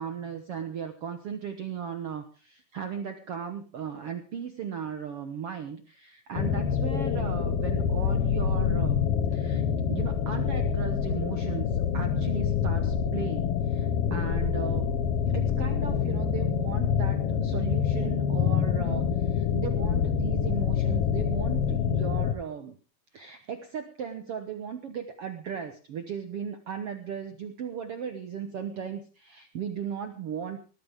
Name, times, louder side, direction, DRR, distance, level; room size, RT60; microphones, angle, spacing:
voice 1, 0.0-9.0 9.3-9.6 9.9-14.9 15.3-22.8 23.1-30.6, right 7 dB, 85° right, 7 dB, 1.2 m, -37 dB
sound 1, 6.3-22.3, left 7 dB, 80° left, 1.3 m, -26 dB
19.5 x 14.5 x 3.6 m, 0.36 s
omnidirectional pair, 4.5 m